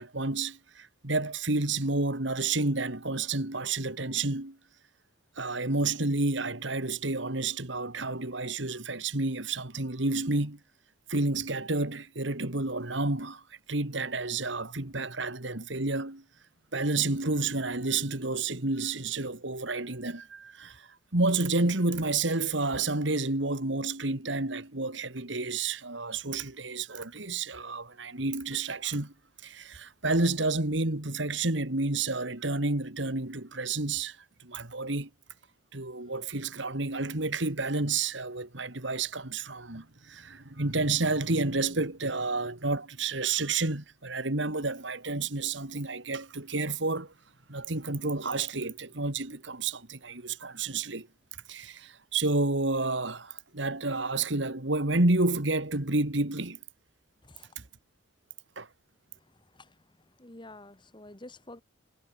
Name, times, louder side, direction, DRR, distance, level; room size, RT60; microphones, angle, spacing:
voice 1, 0.0-4.6 5.4-10.6 11.1-13.4 13.7-16.2 16.7-29.1 29.4-35.1 35.7-47.1 47.5-51.1 51.5-56.6 57.6-57.7 58.6-58.7, right 3 dB, 65° right, 2.4 m, -30 dB
voice 2, 60.2-61.6, left 2 dB, 25° left, 2.2 m, -48 dB
head